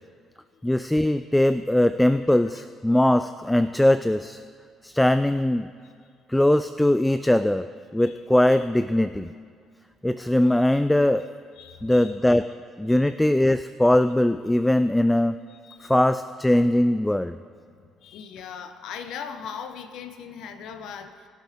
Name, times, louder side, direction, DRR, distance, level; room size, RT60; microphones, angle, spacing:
voice 1, 0.6-4.4 4.8-5.7 6.3-7.7 7.9-9.3 10.0-11.3 11.8-12.5 12.8-15.4 15.8-17.4, left 1 dB, 5° left, 12 dB, 0.3 m, -21 dB
voice 2, 11.6-12.3 12.9-13.1 15.5-16.0 17.7-21.3, left 7 dB, 75° left, 9 dB, 0.9 m, -40 dB
20.0 x 7.7 x 3.6 m, 2.1 s
cardioid pair, 85°, 0 cm